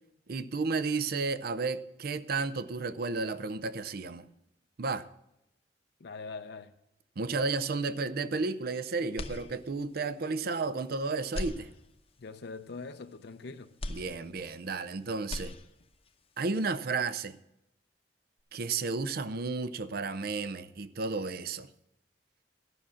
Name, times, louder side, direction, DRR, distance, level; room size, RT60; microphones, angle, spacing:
voice 1, 0.3-4.3 4.8-5.1 7.2-11.7 13.9-15.5 16.4-17.4 18.5-21.7, right 4 dB, 60° right, 0.5 m, -32 dB
voice 2, 6.0-6.7 12.2-13.7, left 4 dB, 65° left, 0.6 m, -42 dB
sound 1, 9.1-10.0 10.5-10.6 11.2-12.3 13.8-14.9 15.2-16.1, left 1 dB, 35° left, 0.8 m, -40 dB
13.0 x 6.2 x 7.2 m
head